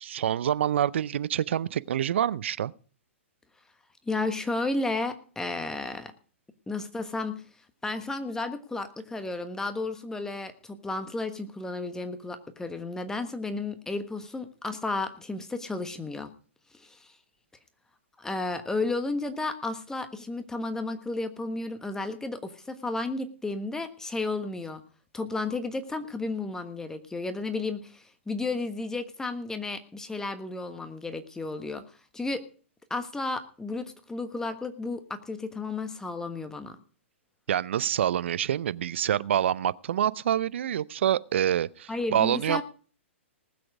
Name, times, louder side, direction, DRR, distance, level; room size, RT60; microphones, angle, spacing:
voice 1, 0.0-2.7 37.5-42.6, right 10 dB, 65° right, 0.6 m, -26 dB
voice 2, 4.0-6.1 6.7-16.3 16.7-17.2 18.2-24.8 25.1-32.4 32.9-36.8 41.9-42.6, left 3 dB, 10° left, 1.3 m, -33 dB
19.5 x 7.8 x 4.9 m
hypercardioid pair, 120°, 7 cm